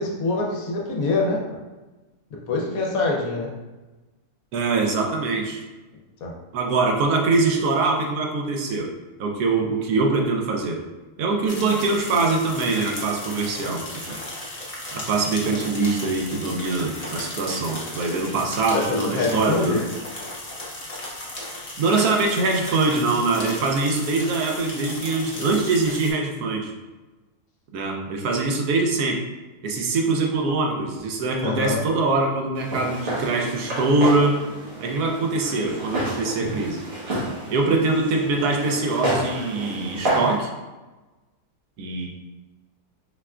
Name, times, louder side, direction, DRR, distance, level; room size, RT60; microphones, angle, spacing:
voice 1, 0.0-1.4 2.5-3.5 6.2-6.3 18.7-19.9 31.4-31.8, left 3 dB, 65° left, -1 dB, 1.0 m, -24 dB
voice 2, 4.5-5.6 6.5-8.9 9.2-10.8 11.2-14.2 14.9-19.8 21.8-26.7 27.7-29.2 29.6-34.4 34.8-36.8 37.5-40.5 41.8-42.1, right 3 dB, 75° right, 2 dB, 1.1 m, -23 dB
sound 1, 11.5-26.1, left 1 dB, 45° left, 0.4 m, -36 dB
Walk footsteps, 32.5-40.4, right 1 dB, 60° right, 1.6 m, -29 dB
4.5 x 3.3 x 2.4 m, 1.2 s
omnidirectional pair, 1.7 m